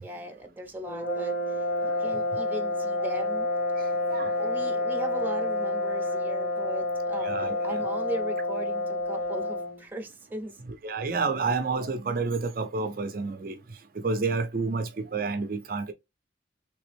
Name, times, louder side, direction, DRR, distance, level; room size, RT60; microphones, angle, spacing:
voice 1, 0.0-3.5 4.2-10.6, right 1 dB, 10° right, 0.8 m, -38 dB
sound 1, 0.9-9.8, left 2 dB, 45° left, 1.4 m, -29 dB
voice 2, 1.9-2.4 3.8-4.5 7.2-7.8 10.8-13.6 13.9-15.9, right 4 dB, 55° right, 0.5 m, -30 dB
3.3 x 3.0 x 3.3 m
head